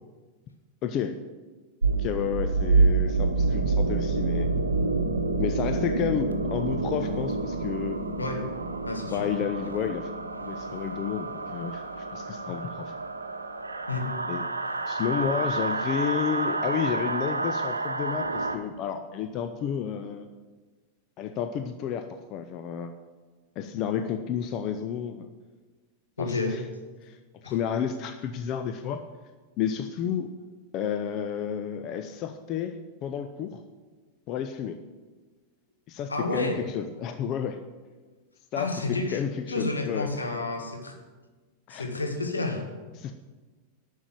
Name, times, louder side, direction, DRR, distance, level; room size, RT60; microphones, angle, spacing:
voice 1, 0.8-1.2 2.0-4.5 5.4-8.0 9.1-10.1 10.5-12.9 14.3-14.4 14.9-20.3 21.2-22.9 23.6-25.3 26.2-26.6 27.0-29.0 29.6-30.3 30.7-33.6 34.3-34.8 35.9-37.6 38.5-40.1 41.7-41.9 43.0-43.1, left 8 dB, 40° left, 8 dB, 0.7 m, -31 dB
sound 1, 1.8-18.6, right 3 dB, 80° right, 0.8 m, -28 dB
voice 2, 8.2-8.5 8.8-9.3 13.9-14.1 26.2-26.6 27.4-27.5 36.1-36.6 38.6-39.2 39.5-41.0 41.7-42.7, left 2 dB, 80° left, 3 dB, 1.8 m, -30 dB
11.0 x 6.5 x 8.9 m, 1.3 s
figure-of-eight pair, 90°, 0 cm